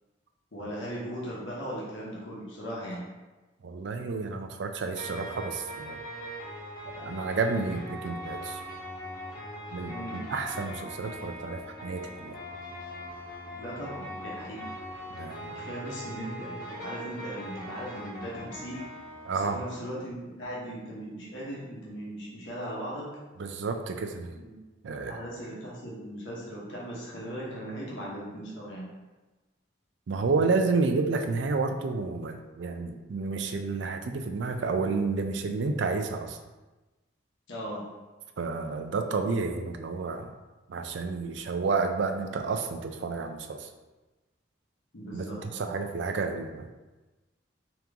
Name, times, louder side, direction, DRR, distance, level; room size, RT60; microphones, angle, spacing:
voice 1, 0.5-3.0 9.9-10.2 13.6-14.7 15.5-18.8 19.3-23.1 24.3-24.6 24.8-28.9 37.5-37.8 44.9-45.7, equal, 75° left, -6 dB, 1.0 m, -38 dB
voice 2, 3.6-6.0 7.0-8.6 9.7-12.4 15.1-15.6 19.2-19.6 23.4-24.4 24.8-25.2 30.1-36.4 38.4-40.3 40.7-43.7 45.1-46.7, right 4 dB, 65° right, 6 dB, 0.4 m, -30 dB
sound 1, 5.0-19.7, equal, 45° left, 1.0 m, -41 dB
3.7 x 3.0 x 3.4 m, 1.2 s
head